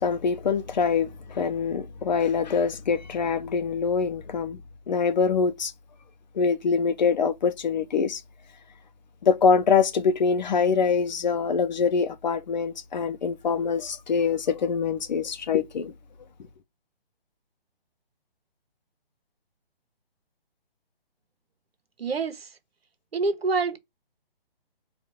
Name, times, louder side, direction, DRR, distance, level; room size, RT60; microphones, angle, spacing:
voice 1, 0.0-4.6 4.9-5.7 6.3-8.2 9.2-15.9, left 5 dB, 45° left, 0.6 m, -24 dB
voice 2, 22.0-22.6 23.1-23.8, right 4 dB, 75° right, 1.1 m, -26 dB
4.1 x 2.5 x 4.5 m
figure-of-eight pair, 145°, 30 cm